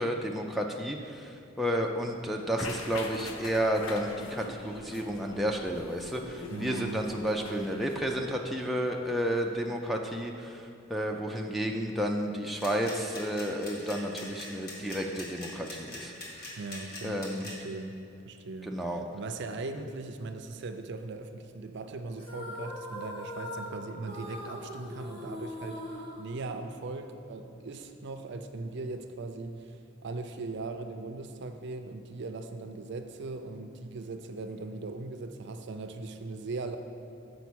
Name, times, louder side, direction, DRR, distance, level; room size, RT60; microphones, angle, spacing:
voice 1, 0.0-16.1 17.0-17.5 18.6-19.0, equal, ahead, 0 dB, 0.4 m, -31 dB
sound 1, 2.6-8.2, left 2 dB, 75° left, 0.7 m, -43 dB
voice 2, 6.5-7.0 16.6-25.8 26.2-36.8, right 3 dB, 55° right, 7 dB, 0.5 m, -39 dB
sound 2, 12.6-17.5, left 2 dB, 50° left, 1.5 m, -42 dB
sound 3, 22.2-27.0, left 1 dB, 25° left, 1.2 m, -41 dB
6.9 x 5.0 x 6.2 m, 2.7 s
head